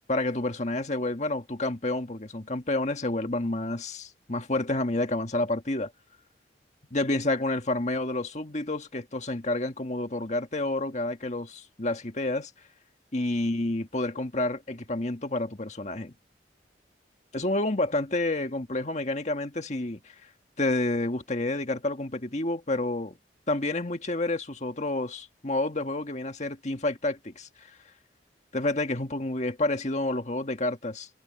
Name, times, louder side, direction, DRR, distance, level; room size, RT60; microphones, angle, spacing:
voice 1, 0.1-5.9 6.9-12.5 13.1-16.1 17.3-20.3 20.6-23.1 23.5-27.7 28.5-31.1, left 2 dB, 40° left, 1.7 m, -29 dB
head